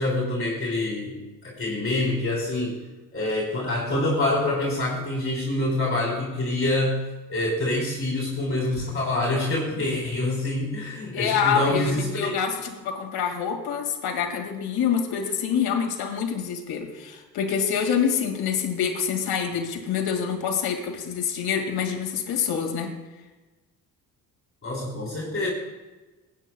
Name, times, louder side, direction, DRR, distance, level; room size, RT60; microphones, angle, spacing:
voice 1, 0.0-2.8 3.1-12.3 24.6-25.5, left 2 dB, 35° left, -4 dB, 3.9 m, -26 dB
voice 2, 11.1-22.9, left 7 dB, 65° left, 3 dB, 2.3 m, -26 dB
20.0 x 9.0 x 2.3 m, 1.2 s
supercardioid pair, 65°, 39 cm